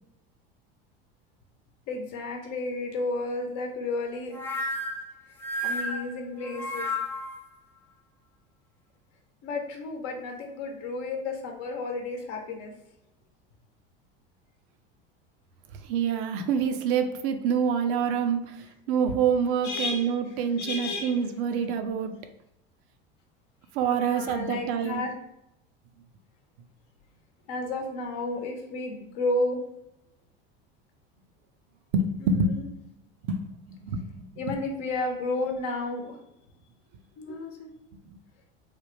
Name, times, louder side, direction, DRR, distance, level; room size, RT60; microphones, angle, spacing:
voice 1, 1.9-4.4 5.6-6.9 9.4-12.7 19.6-20.1 20.6-21.2 23.9-25.1 27.5-29.6 32.2-32.6 34.4-36.2 37.2-37.7, left 2 dB, 60° left, 2 dB, 0.8 m, -32 dB
sound 1, 4.3-7.4, left 1 dB, 10° left, 0.5 m, -32 dB
voice 2, 15.8-22.2 23.7-25.0 31.9-32.7 33.3-34.1, right 6 dB, 65° right, 8 dB, 0.5 m, -26 dB
3.2 x 2.1 x 3.2 m, 0.85 s
hypercardioid pair, 90°, 30 cm